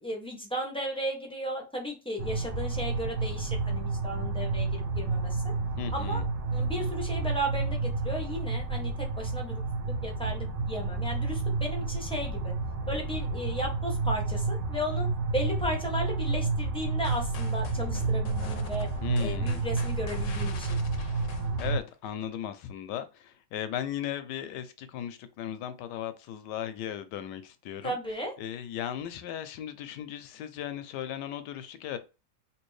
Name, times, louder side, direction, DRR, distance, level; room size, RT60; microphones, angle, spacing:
voice 1, 0.0-5.5 5.9-6.2 6.5-9.6 9.9-12.5 12.9-15.1 15.3-18.9 19.2-20.8 27.8-28.3, equal, 5° left, 0.4 m, -35 dB
sound 1, 2.2-21.8, right 3 dB, 70° right, 1.3 m, -30 dB
voice 2, 5.8-6.2 19.0-19.6 21.6-28.0 28.4-32.0, left 10 dB, 80° left, 1.2 m, -37 dB
sound 2, 17.0-22.3, left 4 dB, 60° left, 0.8 m, -45 dB
3.4 x 2.8 x 3.1 m
omnidirectional pair, 1.8 m